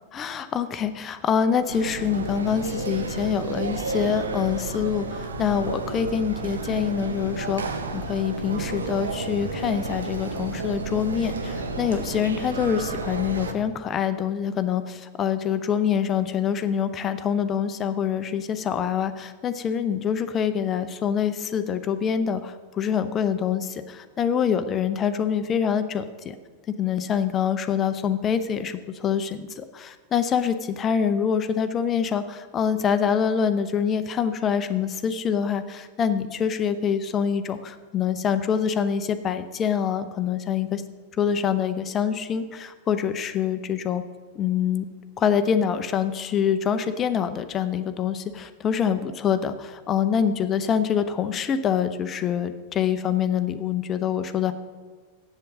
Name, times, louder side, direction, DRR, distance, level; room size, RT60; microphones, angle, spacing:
voice 1, 0.1-7.6 7.9-26.4 26.8-40.8 41.2-44.0 44.4-44.9 45.2-54.5, left 8 dB, 25° left, 11 dB, 0.6 m, -25 dB
sound 1, 1.7-13.5, right 3 dB, 70° right, 0.8 m, -31 dB
7.7 x 7.6 x 7.0 m, 1.5 s
figure-of-eight pair, 90°, 0 cm